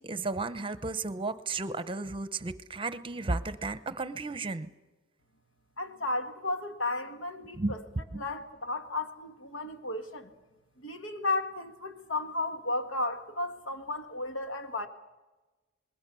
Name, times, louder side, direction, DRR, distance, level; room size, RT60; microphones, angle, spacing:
voice 1, 0.0-4.7 7.6-7.8 8.1-8.2, right 3 dB, 25° right, 0.8 m, -34 dB
voice 2, 5.8-7.8 8.2-10.3 10.8-14.9, left 2 dB, 85° left, 1.8 m, -34 dB
26.5 x 21.0 x 6.9 m
head